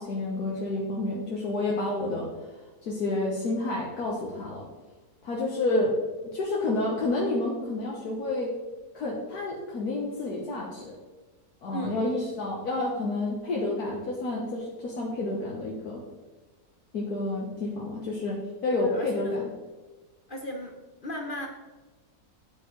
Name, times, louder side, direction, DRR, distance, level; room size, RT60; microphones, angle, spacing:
voice 1, 0.0-2.3 2.9-4.6 5.2-5.9 6.3-8.6 8.9-11.0 11.6-16.0 16.9-19.5, left 2 dB, 70° left, -3 dB, 1.7 m, -29 dB
voice 2, 18.7-19.3 20.3-20.7 21.0-21.5, equal, 40° left, 2 dB, 0.8 m, -36 dB
8.9 x 8.9 x 3.2 m, 1.3 s
omnidirectional pair, 1.7 m